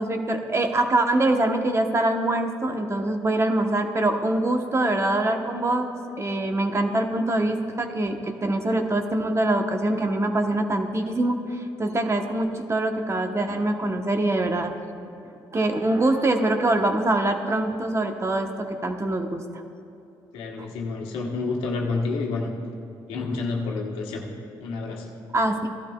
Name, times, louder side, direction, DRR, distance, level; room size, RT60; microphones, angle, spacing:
voice 1, 0.0-5.9 6.2-14.7 15.5-19.6 20.6-20.7 25.3-25.7, right 2 dB, 30° right, 5 dB, 1.1 m, -24 dB
voice 2, 20.3-22.5 23.1-24.3 24.6-25.1, left 3 dB, 85° left, 0 dB, 1.3 m, -29 dB
16.0 x 12.0 x 2.3 m, 2.8 s
supercardioid pair, 60°, 9 cm